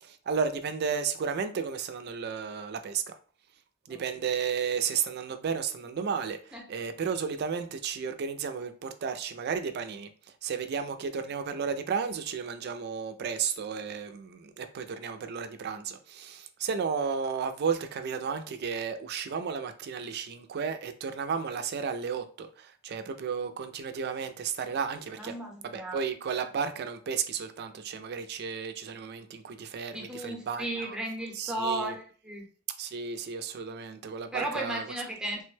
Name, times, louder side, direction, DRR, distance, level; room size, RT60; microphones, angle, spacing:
voice 1, 0.0-3.2 3.9-10.1 10.4-25.4 25.6-31.0 31.4-31.9 32.8-34.8, right 6 dB, 50° right, 0.4 m, -33 dB
voice 2, 25.2-26.0 29.9-32.4 34.3-35.4, right 1 dB, 5° right, 0.7 m, -35 dB
3.3 x 2.1 x 3.2 m
head